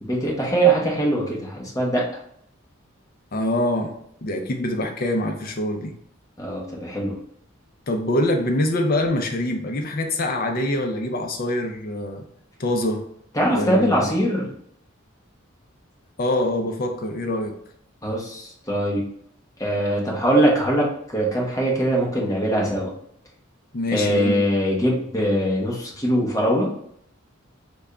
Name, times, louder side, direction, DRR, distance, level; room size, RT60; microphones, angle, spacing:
voice 1, 0.0-2.1 6.4-7.2 13.3-14.5 18.0-19.0 19.6-22.9 23.9-26.7, right 1 dB, 15° left, -3 dB, 0.9 m, -22 dB
voice 2, 3.3-3.9 4.2-6.0 7.9-12.2 12.6-13.1 13.5-14.2 16.2-17.6 23.7-24.4, left 1 dB, 45° left, 4 dB, 0.5 m, -24 dB
3.5 x 2.2 x 3.7 m, 0.68 s
head